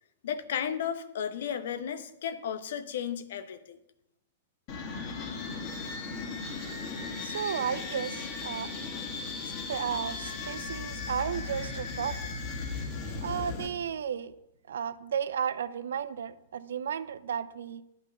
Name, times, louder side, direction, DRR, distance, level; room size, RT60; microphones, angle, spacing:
voice 1, 0.2-3.8, left 8 dB, 60° left, 11 dB, 0.9 m, -34 dB
sound 1, 4.7-13.7, left 4 dB, 40° left, 2.1 m, -37 dB
voice 2, 7.2-8.7 9.7-12.2 13.2-14.3 14.7-17.8, right 8 dB, 65° right, 16 dB, 0.5 m, -33 dB
11.0 x 5.8 x 6.8 m, 0.83 s
figure-of-eight pair, 100°, 0 cm